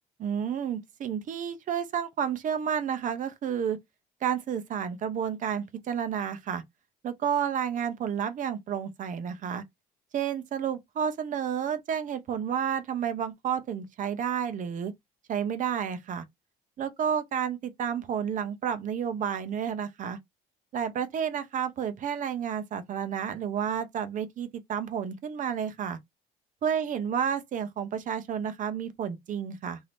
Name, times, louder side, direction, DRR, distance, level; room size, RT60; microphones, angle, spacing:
voice 1, 0.2-3.8 4.2-6.6 7.0-9.6 10.1-14.9 15.3-16.2 16.8-20.2 20.7-26.0 26.6-29.8, right 8 dB, 50° right, 0.8 m, -31 dB
2.7 x 2.7 x 3.4 m
cardioid pair, 110°, 17 cm